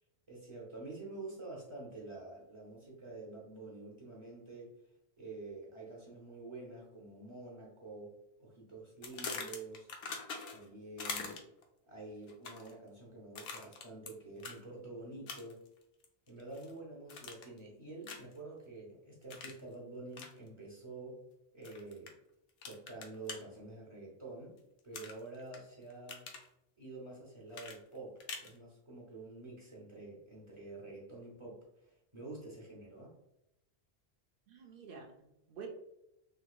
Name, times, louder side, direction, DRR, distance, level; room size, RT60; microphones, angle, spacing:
voice 1, 0.3-4.7 5.2-8.1 8.4-9.9 10.5-11.5 11.8-15.6 16.3-21.2 21.5-22.1 22.6-24.5 24.8-26.3 26.8-31.6 31.8-33.1, right 2 dB, 30° right, -4 dB, 0.8 m, -48 dB
sound 1, 9.0-10.7 11.0-11.6 12.3-12.7 13.4-14.1 14.4-14.6 15.3-15.7 16.0-16.7 17.1-17.6 18.0-18.4 19.3-19.6 20.1-20.3 21.6-22.1 22.6-23.4 24.9-25.6 25.9-26.5 27.5-28.5, left 4 dB, 75° left, 0.8 m, -43 dB
voice 2, 34.5-35.7, right 5 dB, 65° right, 2 dB, 0.7 m, -49 dB
3.6 x 2.7 x 2.3 m, 0.85 s
omnidirectional pair, 1.1 m